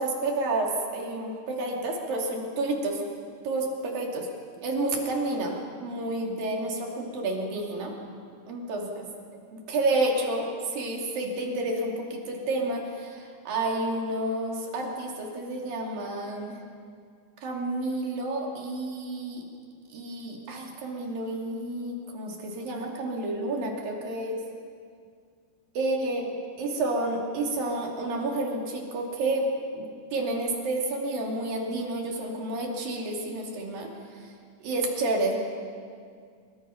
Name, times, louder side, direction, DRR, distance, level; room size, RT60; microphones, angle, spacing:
voice 1, 0.0-3.1 3.4-4.3 4.6-7.9 8.5-8.9 9.5-16.6 17.4-19.4 19.9-24.4 25.7-26.3 26.6-29.5 29.7-34.3 34.6-35.4, right 2 dB, 85° right, 0 dB, 4.6 m, -30 dB
25.5 x 23.0 x 5.7 m, 2.2 s
omnidirectional pair, 3.9 m